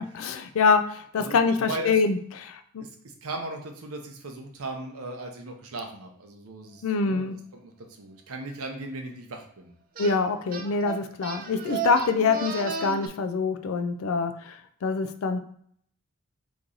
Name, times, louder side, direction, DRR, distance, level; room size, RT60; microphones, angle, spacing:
voice 1, 0.0-2.8 6.8-7.4 10.0-14.5 14.8-15.4, left 4 dB, 70° left, 9 dB, 0.4 m, -25 dB
voice 2, 1.2-1.9 2.8-2.9 3.2-7.7 8.0-9.7, right 2 dB, 85° right, 3 dB, 0.7 m, -37 dB
sound 1, 10.0-10.2 10.5-13.1, right 6 dB, 40° right, 0.4 m, -34 dB
3.0 x 2.6 x 3.7 m, 0.63 s
head